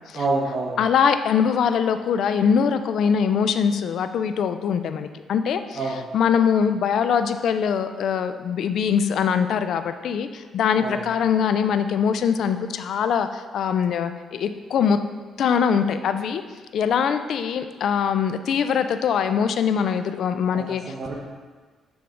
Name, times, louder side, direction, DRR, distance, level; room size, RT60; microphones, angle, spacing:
voice 1, 0.1-0.8 5.8-6.0 10.8-11.0 20.5-21.1, right 3 dB, 45° right, -5 dB, 0.9 m, -27 dB
voice 2, 0.8-15.0 15.4-16.4 16.7-20.9, left 7 dB, 70° left, 9 dB, 0.3 m, -22 dB
7.7 x 3.5 x 3.7 m, 1.4 s
cardioid pair, 90°, 0 cm